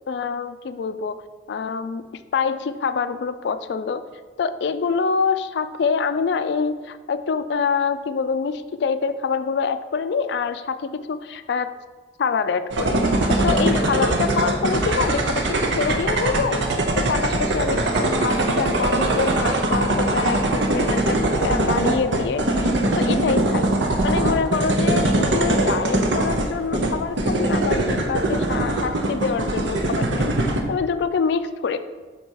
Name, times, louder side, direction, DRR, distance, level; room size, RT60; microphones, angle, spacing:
voice 1, 0.1-1.2 1.5-2.0 2.3-4.0 4.4-11.7 12.2-23.7 24.0-30.4 30.7-31.9, left 5 dB, 60° left, 12 dB, 0.3 m, -25 dB
sound 1, 12.7-30.6, right 1 dB, 75° right, 0.7 m, -22 dB
6.7 x 4.2 x 4.6 m, 1.4 s
head